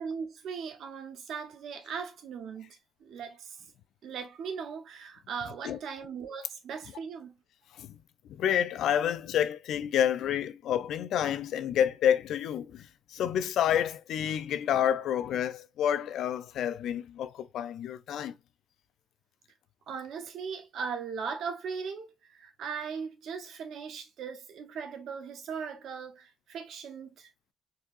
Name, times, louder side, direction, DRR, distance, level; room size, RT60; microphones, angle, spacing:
voice 1, 0.0-3.6 4.0-7.3 19.9-27.3, right 6 dB, 80° right, 0.8 m, -39 dB
voice 2, 8.3-18.3, left 9 dB, 90° left, 0.4 m, -29 dB
3.9 x 2.6 x 2.4 m
cardioid pair, 105°, 0 cm